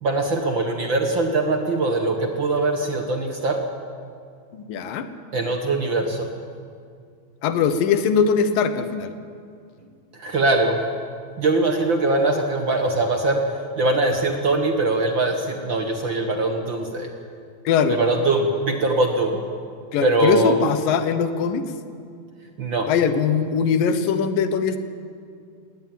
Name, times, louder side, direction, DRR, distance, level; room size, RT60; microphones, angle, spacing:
voice 1, 0.0-3.6 5.3-6.3 10.2-10.8 11.4-13.4 13.8-17.1 17.9-19.4 20.0-20.6 22.6-22.9, right 2 dB, 65° right, 3 dB, 1.2 m, -22 dB
voice 2, 4.5-5.1 7.4-9.1 17.7-18.0 19.9-21.6 22.9-24.8, left 6 dB, 70° left, 10 dB, 2.6 m, -21 dB
20.5 x 18.0 x 9.2 m, 2.2 s
omnidirectional pair, 4.5 m